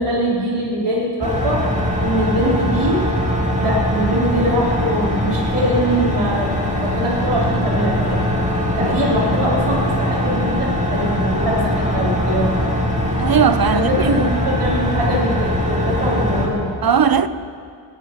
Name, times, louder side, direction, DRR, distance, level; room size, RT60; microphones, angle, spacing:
voice 1, 0.0-1.7 2.0-3.0 3.6-6.5 6.8-8.2 8.8-12.6 13.7-16.7, equal, 90° right, 3.4 m, -22 dB
sound 1, 1.2-16.5, equal, 15° right, 2.2 m, -21 dB
voice 2, 13.2-14.2 16.8-17.3, right 7 dB, 45° right, 0.6 m, -17 dB
17.5 x 10.0 x 5.8 m
wide cardioid pair, 85°, 50 cm